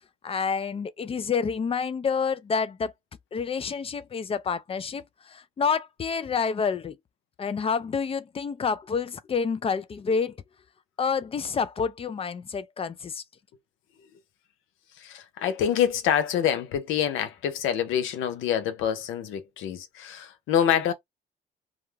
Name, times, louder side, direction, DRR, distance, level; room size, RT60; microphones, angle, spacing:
voice 1, 0.2-2.9 3.3-5.0 5.3-7.0 7.4-10.3 11.0-13.2, left 5 dB, 30° left, 0.4 m, -28 dB
voice 2, 15.0-20.9, left 9 dB, 85° left, 0.6 m, -26 dB
2.4 x 2.1 x 3.1 m
cardioid pair, 90°, 20 cm